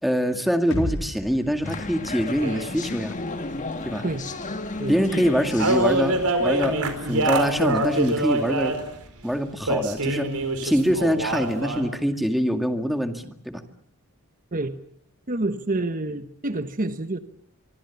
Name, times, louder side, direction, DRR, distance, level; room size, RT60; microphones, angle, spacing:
voice 1, 0.0-3.2 3.9-4.1 4.9-8.7 9.2-10.3 10.6-13.6, equal, ahead, 2.0 m, -24 dB
sound 1, 0.7-4.6, equal, 65° left, 5.0 m, -36 dB
sound 2, 1.6-7.8, left 2 dB, 35° left, 1.5 m, -34 dB
sound 3, 2.4-2.8 4.5-4.6 4.9-5.0 5.2-5.3 5.6-9.1 9.7-11.9, right 2 dB, 85° right, 4.7 m, -25 dB
voice 2, 15.3-17.2, right 2 dB, 40° right, 1.2 m, -28 dB
25.5 x 25.0 x 7.1 m
head